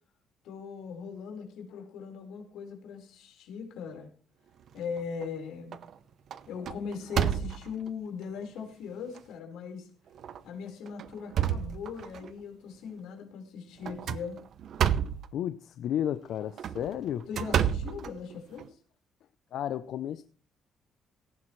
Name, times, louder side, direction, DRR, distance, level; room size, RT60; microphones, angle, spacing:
voice 1, 0.4-4.1 4.7-5.8 6.5-9.9 10.4-14.4 17.3-18.8, left 6 dB, 90° left, 4.5 m, -39 dB
sound 1, 4.7-5.3 5.7-6.0 6.3-7.9 8.6-8.7 9.1-9.2 10.2-10.4 10.9-12.3 13.8-15.3 16.4-18.7, right 9 dB, 55° right, 0.8 m, -30 dB
voice 2, 15.3-17.3 19.5-20.2, left 10 dB, 65° left, 0.6 m, -32 dB
17.5 x 15.0 x 3.2 m
cardioid pair, 145°, 0 cm